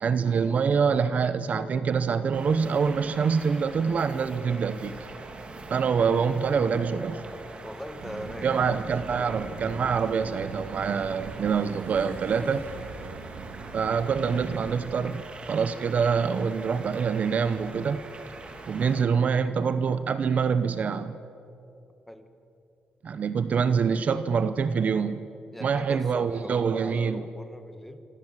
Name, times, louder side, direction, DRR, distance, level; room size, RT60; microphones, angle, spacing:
voice 1, 0.0-5.1 5.7-7.2 8.4-12.6 13.7-18.0 18.7-21.2 23.0-25.2 25.6-27.2, right 6 dB, 50° right, 12 dB, 0.9 m, -25 dB
sound 1, 2.3-19.0, right 3 dB, 35° right, 2.9 m, -43 dB
sound 2, 2.7-14.0, right 1 dB, 15° right, 2.9 m, -53 dB
voice 2, 7.6-8.8 22.1-22.3 25.5-28.0, equal, 5° left, 8 dB, 1.7 m, -41 dB
sound 3, 8.0-14.9, right 4 dB, 90° right, 3.3 m, -40 dB
26.5 x 25.0 x 7.6 m, 2.7 s
cardioid pair, 130°, 3 cm